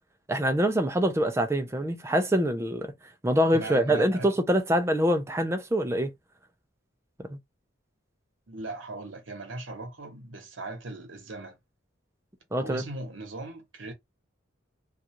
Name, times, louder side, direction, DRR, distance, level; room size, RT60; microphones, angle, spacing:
voice 1, 0.3-2.9 3.2-6.1 7.3-7.4 12.5-12.8, equal, 15° right, 0.4 m, -25 dB
voice 2, 3.5-4.3 5.9-6.0 8.5-11.6 12.6-13.9, right 2 dB, 75° right, 0.9 m, -38 dB
2.4 x 2.3 x 2.9 m
head